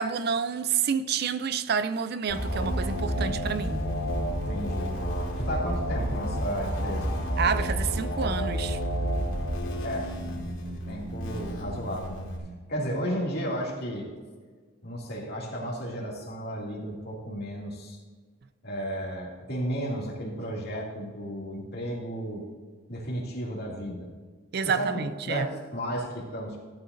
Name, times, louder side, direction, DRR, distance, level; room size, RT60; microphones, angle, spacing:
voice 1, 0.0-3.8 7.4-8.8 24.5-25.5, right 6 dB, 50° right, 0.4 m, -28 dB
sound 1, 2.3-12.4, equal, 85° left, 2.5 m, -30 dB
voice 2, 4.4-5.0 5.3-7.1 9.8-10.5 10.9-12.3 12.7-14.1 14.8-18.0 18.6-22.5 22.9-24.1 24.6-26.6, equal, 50° left, 2.4 m, -33 dB
15.0 x 9.4 x 2.6 m
head